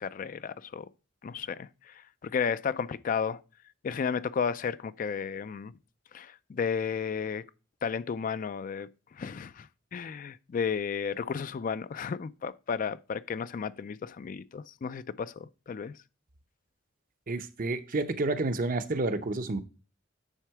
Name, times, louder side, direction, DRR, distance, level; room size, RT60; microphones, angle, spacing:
voice 1, 0.0-0.9 1.2-1.9 2.2-3.4 3.8-5.7 6.1-7.4 7.8-8.9 9.2-15.9, left 6 dB, 45° left, 0.3 m, -33 dB
voice 2, 17.3-19.6, right 2 dB, 45° right, 0.7 m, -30 dB
9.2 x 3.7 x 4.6 m
head